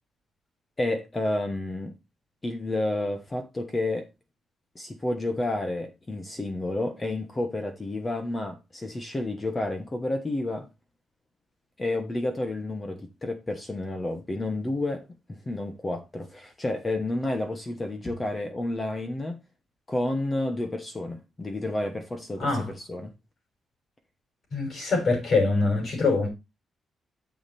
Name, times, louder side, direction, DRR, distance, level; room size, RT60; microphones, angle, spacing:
voice 1, 0.8-1.9 2.4-4.1 4.7-10.7 11.8-19.4 19.9-23.1, left 2 dB, 15° left, 1.2 m, -30 dB
voice 2, 22.4-22.7 24.5-26.3, left 3 dB, 45° left, 6.1 m, -24 dB
9.6 x 7.3 x 4.3 m
wide cardioid pair, 180°, 0 cm